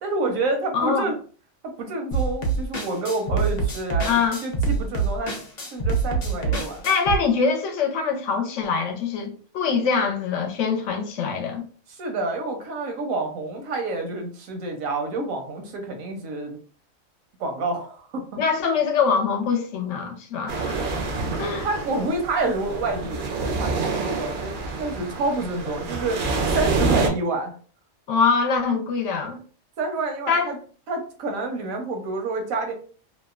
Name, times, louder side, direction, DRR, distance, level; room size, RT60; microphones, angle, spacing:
voice 1, 0.0-1.2 1.6-4.1 4.4-5.3 5.7-6.8 11.9-16.6 17.4-18.4 21.2-26.2 26.5-27.5 29.8-30.6 30.9-32.7, right 2 dB, 90° right, 1.1 m, -28 dB
voice 2, 0.7-1.1 4.0-4.4 6.5-11.6 18.3-20.9 21.4-21.7 28.1-29.4 30.3-30.5, left 5 dB, 70° left, 0.9 m, -24 dB
sound 1, 2.1-7.2, right 4 dB, 55° left, 0.5 m, -25 dB
sound 2, 20.5-27.1, right 3 dB, 65° right, 0.5 m, -27 dB
2.8 x 2.0 x 2.3 m
omnidirectional pair, 1.4 m